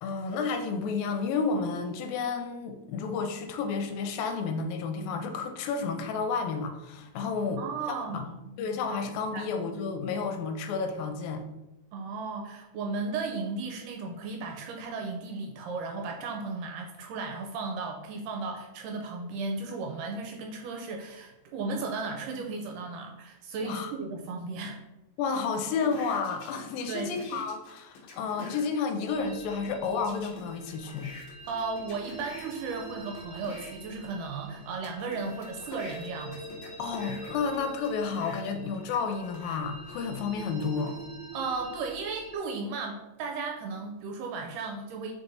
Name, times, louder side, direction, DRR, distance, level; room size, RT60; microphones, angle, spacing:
voice 1, 0.0-7.6 8.1-8.2 8.6-11.4 23.6-23.9 25.2-31.1 36.8-40.9, left 5 dB, 80° left, 6 dB, 2.4 m, -31 dB
voice 2, 7.5-8.3 9.3-9.5 11.9-24.8 26.9-27.4 31.5-36.4 41.3-45.1, right 4 dB, 80° right, 2 dB, 2.1 m, -35 dB
sound 1, 25.8-28.7 30.0-33.7 34.3-39.6 40.2-41.0, left 3 dB, 65° left, 2.0 m, -47 dB
sound 2, 29.1-42.3, right 3 dB, 60° right, 0.8 m, -46 dB
5.2 x 4.5 x 4.1 m, 0.96 s
omnidirectional pair, 4.1 m